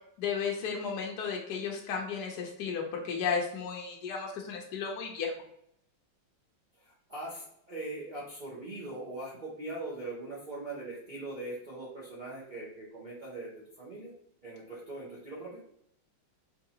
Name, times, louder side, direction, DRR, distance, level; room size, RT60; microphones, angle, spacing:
voice 1, 0.2-5.3, left 6 dB, 70° left, 0 dB, 1.0 m, -34 dB
voice 2, 6.8-13.5 13.8-14.1 14.4-15.6, right 2 dB, 70° right, -8 dB, 0.4 m, -41 dB
3.7 x 2.9 x 2.7 m, 0.73 s
omnidirectional pair, 2.2 m